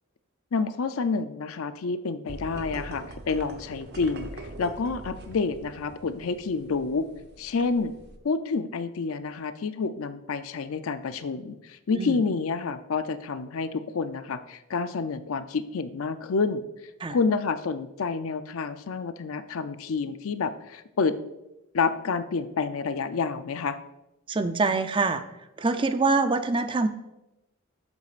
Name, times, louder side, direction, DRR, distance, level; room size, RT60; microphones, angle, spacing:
voice 1, 0.5-7.1 7.4-7.9 8.2-16.6 17.1-21.2 21.7-23.8, left 4 dB, 70° left, 11 dB, 0.5 m, -29 dB
sound 1, 2.3-8.2, right 2 dB, 50° right, 0.9 m, -43 dB
voice 2, 24.3-25.2 25.6-26.9, right 3 dB, 25° right, 9 dB, 0.4 m, -24 dB
12.0 x 8.2 x 2.5 m, 0.94 s
head